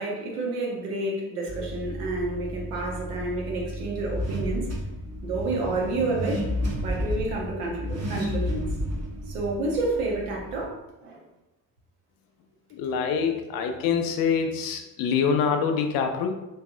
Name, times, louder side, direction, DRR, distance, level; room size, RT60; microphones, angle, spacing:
voice 1, 0.0-4.7 5.2-6.5 6.8-8.7 9.2-11.3, right 2 dB, 70° right, -1 dB, 0.9 m, -30 dB
Car / Accelerating revving vroom, 1.5-10.7, equal, 35° right, 1.1 m, -32 dB
voice 2, 12.8-16.3, left 6 dB, 50° left, 5 dB, 0.5 m, -25 dB
3.3 x 3.1 x 2.5 m, 1.0 s
figure-of-eight pair, 45°, 47 cm